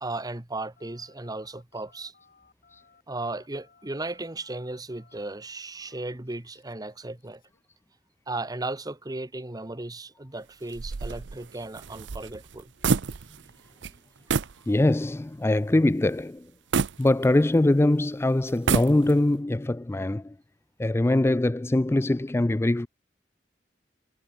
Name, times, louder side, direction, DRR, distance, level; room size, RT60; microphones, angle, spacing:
voice 1, 0.0-2.1 3.1-7.4 8.3-12.7, right 2 dB, 20° right, 1.2 m, -35 dB
Telephone, 0.8-7.6, left 5 dB, 55° left, 5.4 m, -61 dB
sound 1, 10.7-13.6 13.8-14.0 14.3-14.6 15.1-15.2 16.7-17.7 18.5-19.4, right 5 dB, 85° right, 0.6 m, -28 dB
voice 2, 14.7-16.5 17.0-20.4 20.8-22.9, left 1 dB, 15° left, 0.4 m, -23 dB
head